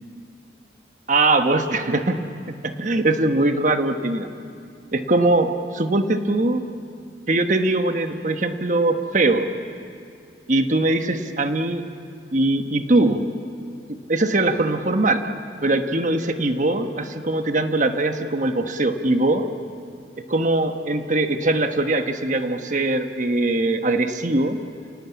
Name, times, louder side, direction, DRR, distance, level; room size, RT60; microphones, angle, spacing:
voice 1, 1.1-4.3 4.9-6.7 7.3-9.5 10.5-11.8 12.3-13.2 13.9-15.2 15.6-19.5 20.3-24.6, right 2 dB, 45° right, 7 dB, 1.2 m, -21 dB
28.5 x 18.0 x 8.6 m, 2.4 s
head